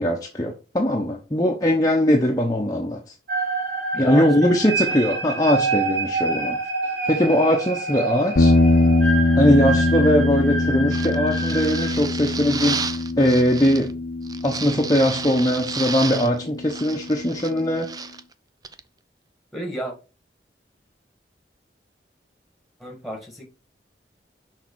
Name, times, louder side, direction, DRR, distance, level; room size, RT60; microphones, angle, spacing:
voice 1, 0.0-3.0 4.0-6.6 7.1-8.5 9.4-13.9 14.4-17.9, equal, 20° left, 0.8 m, -20 dB
sound 1, 3.3-11.9, right 3 dB, 75° right, 3.3 m, -27 dB
voice 2, 3.9-4.6 19.5-19.9 22.8-23.5, right 1 dB, ahead, 1.7 m, -31 dB
sound 2, 8.4-16.7, left 2 dB, 80° left, 0.7 m, -22 dB
sound 3, 10.9-13.9 14.2-16.4 16.7-18.2 18.6-18.8, right 5 dB, 20° right, 0.4 m, -32 dB
6.3 x 4.3 x 4.6 m
head